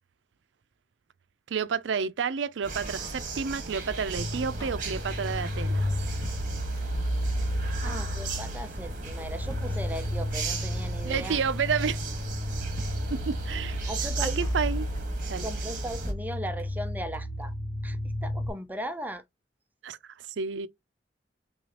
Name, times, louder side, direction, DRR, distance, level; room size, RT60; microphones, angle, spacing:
voice 1, 1.5-6.0 7.8-8.1 11.0-12.0 13.3-13.8 14.2-14.9 15.3-15.5 19.8-20.7, right 6 dB, 80° right, 0.4 m, -30 dB
sound 1, 2.6-16.1, right 3 dB, 45° right, 1.2 m, -36 dB
sound 2, 4.2-18.5, equal, 50° left, 0.6 m, -33 dB
Drum kit, 4.6-5.4 5.7-5.8 6.0-7.1 7.3-7.4 7.6-8.1 8.4-8.7 9.0-9.1 9.2-9.3 9.5-10.3 10.6-10.7 10.9-11.4 11.7-12.0 12.2-12.3 12.5-12.6 12.8-13.6 13.9-14.0 14.1-14.7 15.0-15.2 15.5-15.6 15.8-15.9 16.0-16.9 17.1-17.2 17.4-17.5, equal, 20° left, 1.1 m, -42 dB
voice 2, 7.8-11.4 13.9-14.4 15.4-17.5 17.8-19.2, right 1 dB, 10° right, 0.4 m, -37 dB
6.1 x 2.3 x 2.8 m
head